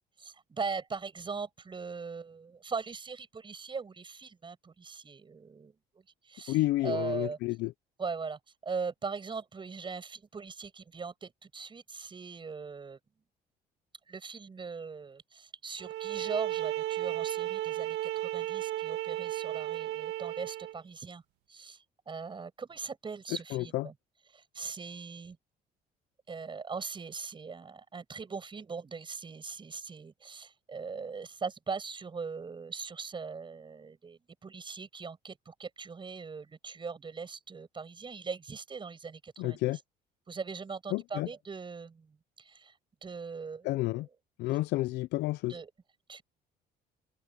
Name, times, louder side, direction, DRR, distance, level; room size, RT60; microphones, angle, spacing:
voice 1, 0.2-5.7 6.2-7.4 8.0-13.0 14.1-21.2 21.5-23.9 24.3-25.4 26.3-39.8 40.3-42.7 43.0-44.0 45.5-45.7 46.1-46.2, right 5 dB, 30° right, 7.8 m, -40 dB
voice 2, 6.5-7.7 23.5-23.9 39.4-39.8 40.9-41.3 43.6-44.1 44.4-45.6, left 18 dB, 85° left, 0.5 m, -30 dB
sound 1, 15.8-20.8, right 14 dB, 90° right, 1.8 m, -34 dB
cardioid pair, 110°, 17 cm